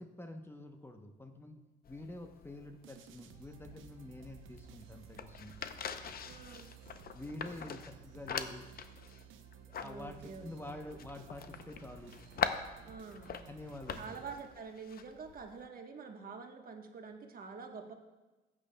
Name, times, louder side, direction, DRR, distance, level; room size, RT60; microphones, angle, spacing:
voice 1, 0.0-5.6 7.1-8.7 9.6-12.1 13.5-14.2, left 1 dB, 10° left, 5 dB, 0.7 m, -47 dB
sound 1, 1.8-15.7, left 7 dB, 50° left, 0.6 m, -43 dB
sound 2, 2.8-14.9, right 8 dB, 80° right, 0.7 m, -56 dB
voice 2, 6.2-6.7 9.8-10.8 12.9-13.4 13.9-17.9, right 5 dB, 45° right, 4 dB, 1.1 m, -47 dB
14.0 x 8.6 x 2.2 m, 1.2 s
cardioid pair, 90°, 20 cm